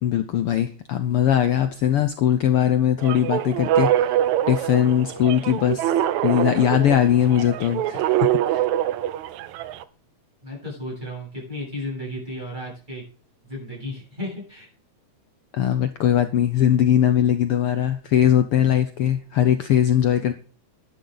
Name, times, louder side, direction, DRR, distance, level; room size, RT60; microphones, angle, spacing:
voice 1, 0.0-4.2 4.5-5.9 6.2-8.6 15.5-20.3, left 10 dB, 70° left, 10 dB, 1.4 m, -20 dB
sound 1, 3.0-9.8, right 12 dB, 80° right, 2.1 m, -24 dB
voice 2, 10.4-13.0 13.5-14.7, left 1 dB, 15° right, -5 dB, 8.3 m, -33 dB
12.0 x 12.0 x 4.0 m, 0.40 s
omnidirectional pair, 3.3 m